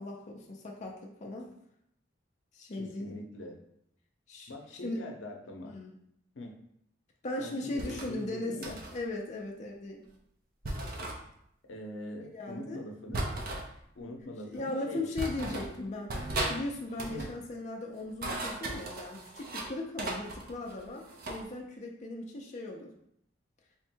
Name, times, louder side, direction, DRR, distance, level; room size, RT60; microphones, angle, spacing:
voice 1, 0.0-1.5 2.5-3.2 4.3-4.5 4.8-5.0 5.6-5.9 7.2-10.0 12.2-12.8 14.4-22.9, left 2 dB, 40° left, 0 dB, 0.4 m, -38 dB
voice 2, 2.7-3.6 4.5-5.7 6.3-6.5 7.4-8.8 11.6-13.2 13.9-15.1 17.0-17.3, left 1 dB, 80° left, 2 dB, 0.6 m, -43 dB
sound 1, 7.8-8.1 8.6-9.0 10.6-11.2 13.1-13.7 14.5-14.6 15.2-15.7 16.1-16.6 16.9-17.3 18.0-19.7 20.0-21.4, right 2 dB, 50° right, 0.6 m, -36 dB
3.5 x 2.2 x 4.3 m, 0.72 s
head